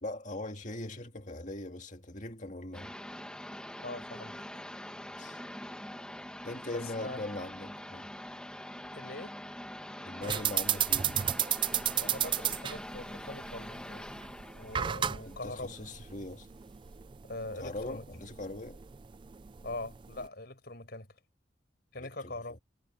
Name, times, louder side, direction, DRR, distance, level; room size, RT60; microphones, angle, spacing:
voice 1, 0.0-2.9 5.2-5.4 6.4-8.1 10.0-11.2 15.3-16.5 17.5-18.8 22.0-22.6, left 2 dB, 40° left, 2.2 m, -41 dB
sound 1, 2.7-16.2, left 1 dB, 5° left, 1.3 m, -44 dB
voice 2, 3.8-4.4 6.7-7.2 8.9-9.3 11.9-14.3 14.5-15.7 17.2-18.2 19.6-21.1 21.9-22.6, left 2 dB, 55° left, 5.5 m, -42 dB
sound 2, 10.2-20.3, right 10 dB, 25° right, 0.3 m, -34 dB
head